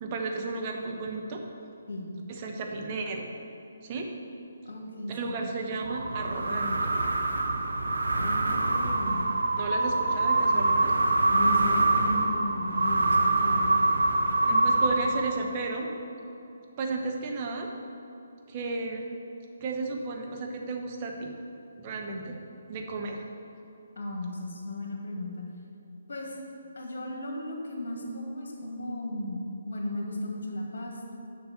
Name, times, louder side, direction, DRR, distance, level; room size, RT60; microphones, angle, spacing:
voice 1, 0.0-1.4 2.3-3.3 3.8-4.1 5.1-6.9 9.6-10.9 14.5-15.9 16.8-17.7 18.5-19.0 19.6-21.3 21.8-22.4 22.7-23.2, right 3 dB, 30° right, 1 dB, 1.0 m, -33 dB
voice 2, 4.7-5.5 8.2-9.3 11.3-13.7 24.0-25.4 26.1-26.4 26.8-29.4 29.6-31.1, left 1 dB, 60° left, 0 dB, 1.9 m, -35 dB
sound 1, 5.8-15.6, right 2 dB, 70° right, 0.8 m, -25 dB
7.0 x 5.9 x 6.7 m, 2.7 s
figure-of-eight pair, 140°, 0 cm